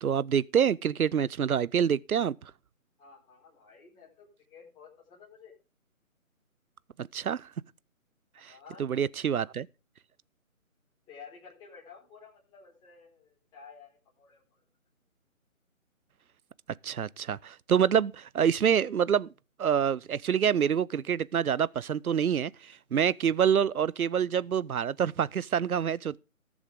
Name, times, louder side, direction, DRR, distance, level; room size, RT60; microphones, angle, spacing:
voice 1, 0.0-2.5 7.0-7.5 8.4-8.5 8.8-9.7 16.8-19.3 19.6-26.2, right 8 dB, 90° right, 0.5 m, -27 dB
voice 2, 3.0-5.5 8.4-9.3 11.1-14.6, left 5 dB, 10° left, 4.3 m, -53 dB
18.5 x 7.1 x 3.5 m
figure-of-eight pair, 150°, 42 cm